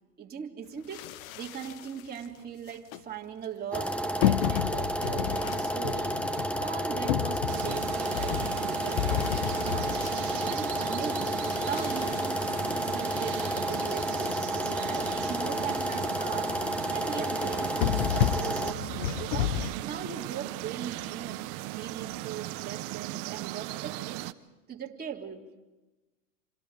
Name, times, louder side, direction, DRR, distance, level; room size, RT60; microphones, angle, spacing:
voice 1, 0.2-6.2 6.6-14.4 14.7-16.6 16.9-24.3 24.7-25.6, right 8 dB, 20° right, -1 dB, 3.4 m, -40 dB
sound 1, 0.9-2.2 2.7-3.0 4.2-10.9 11.4-13.5 14.0-14.1 14.3-14.4 14.9-15.0 15.3-15.5 15.7-16.2 16.5-16.7 17.4-19.7, left 12 dB, 60° left, 1.2 m, -32 dB
sound 2, 3.7-18.7, equal, 5° left, 1.2 m, -31 dB
sound 3, 7.5-24.3, right 19 dB, 45° right, 1.1 m, -38 dB
28.5 x 27.0 x 5.1 m, 1.1 s
hypercardioid pair, 120°, 47 cm